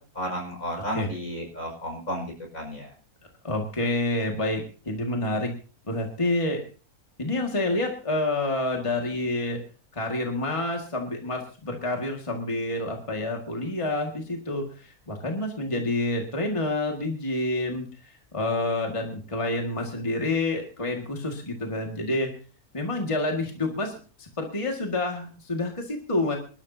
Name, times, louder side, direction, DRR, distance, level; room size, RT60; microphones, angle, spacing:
voice 1, 0.1-2.9, equal, 60° left, 1 dB, 5.9 m, -33 dB
voice 2, 3.4-5.5 5.9-6.6 7.2-9.6 9.9-22.3 22.7-26.4, left 2 dB, 20° left, 2 dB, 2.0 m, -28 dB
26.0 x 12.5 x 2.8 m, 0.37 s
omnidirectional pair, 1.6 m